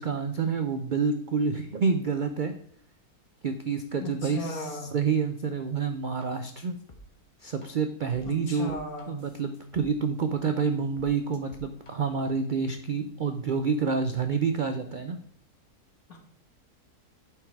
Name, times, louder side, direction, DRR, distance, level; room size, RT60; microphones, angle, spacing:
voice 1, 0.0-2.5 3.4-6.8 7.4-8.8 9.1-15.2, right 5 dB, 75° right, 7 dB, 0.4 m, -28 dB
voice 2, 4.0-5.0 8.3-9.2 16.1-16.2, left 1 dB, 70° left, 1 dB, 2.2 m, -37 dB
sound 1, 6.2-6.3 6.9-7.0 7.6-7.7 8.1-9.9 10.4-10.5 11.0-11.9, left 2 dB, 25° left, 1.0 m, -51 dB
9.0 x 4.7 x 4.6 m, 0.65 s
omnidirectional pair, 1.6 m